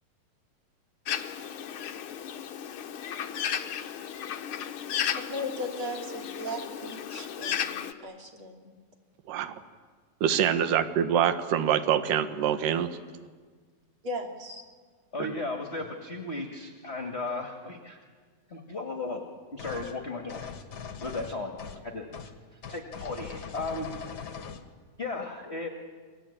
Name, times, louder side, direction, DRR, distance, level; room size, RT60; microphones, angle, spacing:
Bird, 1.1-7.9, left 9 dB, 70° left, 1.2 m, -34 dB
voice 1, 5.1-8.8 14.0-14.6, left 1 dB, 40° right, 2 dB, 3.4 m, -37 dB
voice 2, 10.2-12.9 15.2-15.3, right 9 dB, 75° right, 10 dB, 2.8 m, -25 dB
voice 3, 15.1-18.0 18.5-19.2 19.5-20.5 21.0-21.6 21.8-22.1 22.5-23.9 25.0-25.7, left 3 dB, 25° left, 3 dB, 1.8 m, -35 dB
sound 1, 19.6-19.9 20.3-21.8 22.1-22.3 22.6-24.7, left 6 dB, 40° left, 1.6 m, -41 dB
29.5 x 23.0 x 8.8 m, 1.5 s
omnidirectional pair, 3.9 m